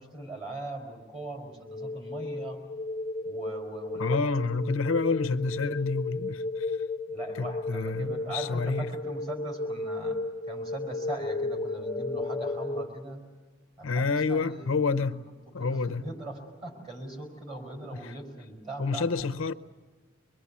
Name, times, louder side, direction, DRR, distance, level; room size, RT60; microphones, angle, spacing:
voice 1, 0.0-2.6 3.2-4.2 7.1-10.2 10.5-13.2 13.8-15.1 15.6-19.3, right 2 dB, 30° right, 4.8 m, -40 dB
sound 1, 1.7-12.9, left 2 dB, 25° left, 0.7 m, -34 dB
voice 2, 4.0-6.7 7.3-8.9 13.8-15.3 15.5-16.0 17.9-18.1 18.8-19.5, left 4 dB, 75° left, 0.7 m, -28 dB
24.5 x 22.5 x 8.4 m
head